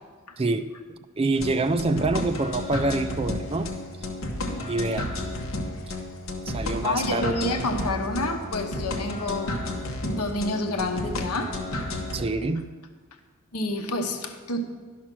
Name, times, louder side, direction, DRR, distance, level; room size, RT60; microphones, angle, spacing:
voice 1, 0.4-0.7 1.2-3.8 4.7-5.1 6.5-7.5 12.1-12.7, right 2 dB, 25° right, 9 dB, 0.4 m, -26 dB
sound 1, 1.3-12.3, left 1 dB, 65° left, 1.1 m, -32 dB
voice 2, 4.3-4.7 6.8-9.6 10.0-11.6 13.5-14.6, left 2 dB, 90° left, 5 dB, 0.9 m, -29 dB
11.0 x 5.9 x 6.0 m, 1.4 s
head